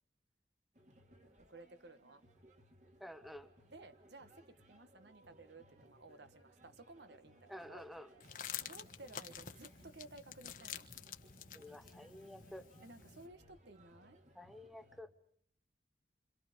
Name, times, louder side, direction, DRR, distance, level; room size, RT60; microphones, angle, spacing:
sound 1, 0.7-15.0, right 1 dB, 40° right, 2.3 m, -65 dB
voice 1, 1.5-2.2 3.7-4.3 4.7-7.4 7.7-7.9 8.5-10.8 12.8-14.2, right 2 dB, 70° right, 1.4 m, -56 dB
voice 2, 3.0-3.5 7.5-8.1 11.5-12.6 14.3-15.1, left 1 dB, ahead, 1.0 m, -51 dB
sound 2, 8.2-13.3, left 9 dB, 45° left, 1.3 m, -49 dB
27.5 x 26.5 x 5.2 m
head